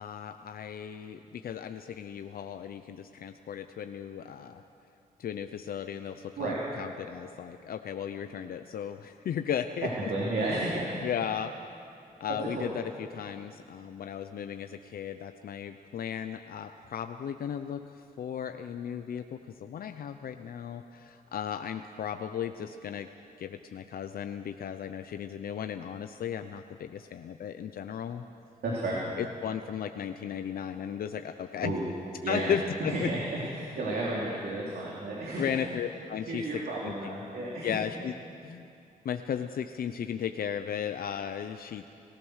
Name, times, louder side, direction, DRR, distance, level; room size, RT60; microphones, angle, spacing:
voice 1, 0.0-4.6 5.2-10.1 11.0-11.5 12.2-23.1 23.4-28.2 29.2-31.7 32.3-33.1 35.4-36.9 37.6-38.1 38.4-38.7 39.0-41.8, left 8 dB, 70° left, 8 dB, 0.7 m, -35 dB
voice 2, 10.1-10.9 12.5-12.6 28.6-29.0 31.6-31.9 32.2-32.5 32.8-35.6 36.3-37.7, right 2 dB, 75° right, -5 dB, 3.6 m, -32 dB
29.0 x 15.0 x 6.5 m, 2.5 s
cardioid pair, 105°, 16 cm